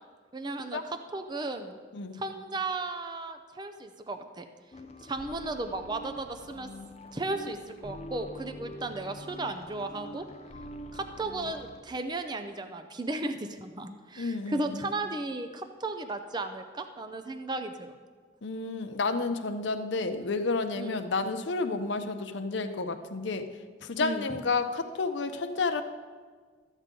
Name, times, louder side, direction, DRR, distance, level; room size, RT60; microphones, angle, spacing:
voice 1, 0.3-0.8 1.1-1.8 2.2-4.5 5.1-6.7 7.1-10.3 10.9-18.0 20.8-21.0 24.0-24.3, right 2 dB, 25° right, 7 dB, 0.5 m, -35 dB
sound 1, 4.7-11.8, equal, 35° left, 0.5 m, -45 dB
voice 2, 14.2-14.9 18.4-25.8, left 3 dB, 75° left, 8 dB, 0.7 m, -31 dB
13.5 x 8.1 x 3.8 m, 1.5 s
head